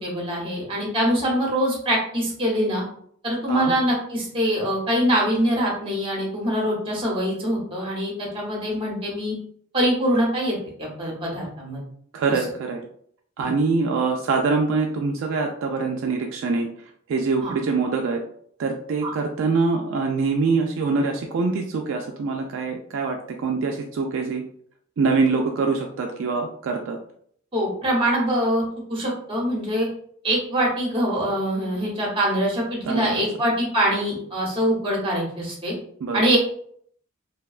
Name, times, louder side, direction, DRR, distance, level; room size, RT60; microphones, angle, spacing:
voice 1, 0.0-2.8 3.2-9.3 9.7-11.8 13.4-13.6 17.4-17.5 19.0-19.1 27.5-28.6 28.9-29.9 30.2-35.7 36.1-36.4, equal, 25° right, -2 dB, 0.9 m, -24 dB
voice 2, 12.1-12.8 13.4-16.7 17.1-18.2 18.6-24.4 25.0-27.0 32.8-33.2 36.0-36.2, right 4 dB, 65° right, 2 dB, 0.3 m, -24 dB
2.7 x 2.2 x 2.3 m, 0.63 s
head